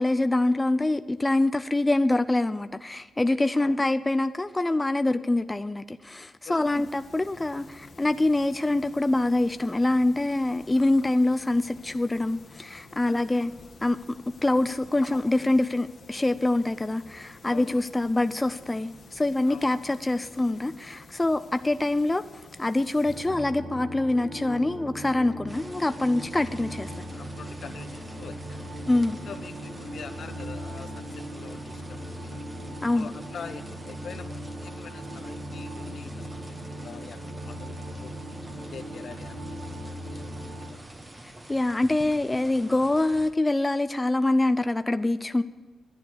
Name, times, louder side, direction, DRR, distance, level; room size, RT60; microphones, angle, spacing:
voice 1, 0.0-13.5 13.8-14.0 14.4-22.2 22.6-27.0 28.9-29.2 32.8-33.1 41.5-45.4, left 2 dB, 15° left, 11 dB, 0.4 m, -25 dB
voice 2, 6.4-6.9 13.0-13.2 13.4-13.6 17.4-17.9 19.5-19.8 26.1-26.2 27.1-28.7 29.3-32.5 32.9-38.2 38.6-40.8, left 6 dB, 70° left, 8 dB, 1.0 m, -45 dB
sound 1, 6.6-23.3, left 3 dB, 50° left, 1.6 m, -50 dB
sound 2, 23.0-40.7, equal, 45° right, 4.9 m, -39 dB
sound 3, 25.5-43.3, right 1 dB, 20° right, 1.3 m, -47 dB
11.0 x 9.3 x 6.3 m, 1.4 s
cardioid pair, 100°, 0 cm